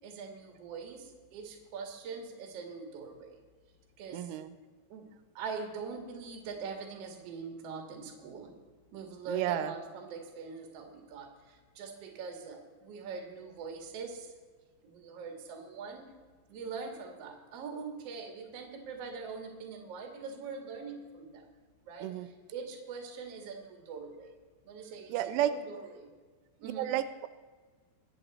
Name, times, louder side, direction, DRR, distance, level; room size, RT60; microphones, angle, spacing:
voice 1, 0.0-3.4 4.0-4.3 4.9-5.1 5.3-8.5 8.9-14.3 14.8-16.1 16.5-21.4 21.9-22.1 22.5-24.3 24.6-26.1 26.6-26.9, right 5 dB, 55° right, 3 dB, 1.7 m, -43 dB
voice 2, 4.1-4.6 9.3-9.7 22.0-22.3 25.1-25.5 26.6-27.3, right 12 dB, 85° right, 13 dB, 3.0 m, -32 dB
22.5 x 8.2 x 4.2 m, 1.4 s
omnidirectional pair, 5.7 m